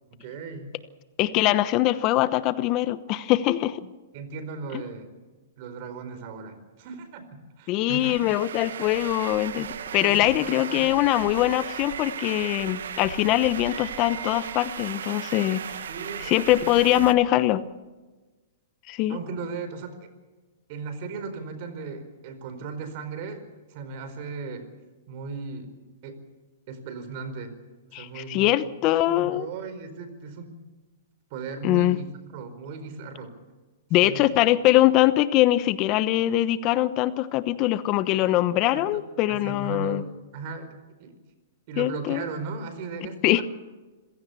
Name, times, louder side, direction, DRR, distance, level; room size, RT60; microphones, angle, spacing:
voice 1, 0.1-0.7 1.2-1.4 4.1-5.1 5.6-8.2 10.0-10.9 15.9-16.3 16.6-17.1 19.1-20.1 20.7-24.7 25.1-25.7 26.0-26.2 26.7-27.5 27.9-28.6 29.0-30.6 31.3-33.3 34.0-34.2 38.9-39.0 39.3-41.1 41.7-43.4, right 4 dB, 50° right, 10 dB, 4.6 m, -37 dB
voice 2, 1.2-3.8 7.7-9.7 9.9-15.6 16.2-17.6 18.9-19.2 27.9-29.5 31.6-32.0 33.9-40.0 41.8-42.2 43.2-43.4, left 15 dB, 35° left, 14 dB, 1.0 m, -22 dB
sound 1, 7.9-17.1, right 8 dB, 80° right, 1.6 m, -36 dB
26.5 x 16.5 x 7.1 m, 1.2 s
hypercardioid pair, 135°, 0 cm